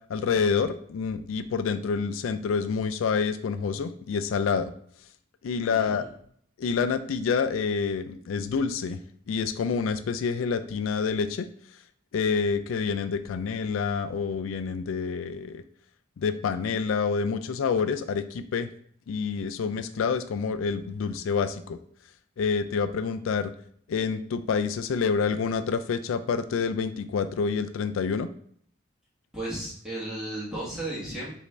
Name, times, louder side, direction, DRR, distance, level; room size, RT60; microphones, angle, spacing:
voice 1, 0.1-4.7 5.4-6.0 6.6-9.0 9.3-11.5 12.1-15.6 16.2-18.7 19.1-21.8 22.4-23.5 23.9-28.3, left 5 dB, 85° left, 10 dB, 0.3 m, -27 dB
voice 2, 5.7-6.1 29.3-31.3, right 1 dB, 5° right, -7 dB, 1.4 m, -34 dB
5.0 x 2.7 x 3.2 m, 0.62 s
head